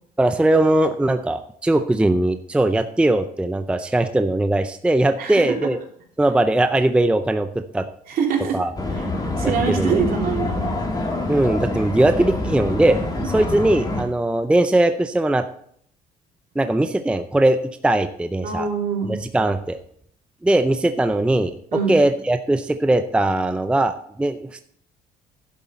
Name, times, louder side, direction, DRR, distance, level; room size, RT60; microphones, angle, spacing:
voice 1, 0.2-5.8 6.2-7.9 8.5-8.7 9.4-10.0 11.3-13.0 13.2-15.5 16.6-17.6 17.8-18.7 19.1-19.8 20.4-21.6 21.9-24.6, right 1 dB, 5° right, 9 dB, 0.5 m, -20 dB
voice 2, 8.1-8.6 8.9-9.1 9.4-10.8 18.4-19.2 21.7-21.9, right 6 dB, 60° right, 0 dB, 3.1 m, -24 dB
sound 1, 8.8-14.0, left 2 dB, 20° left, 2.2 m, -26 dB
11.0 x 7.8 x 4.2 m, 0.67 s
cardioid pair, 110°, 17 cm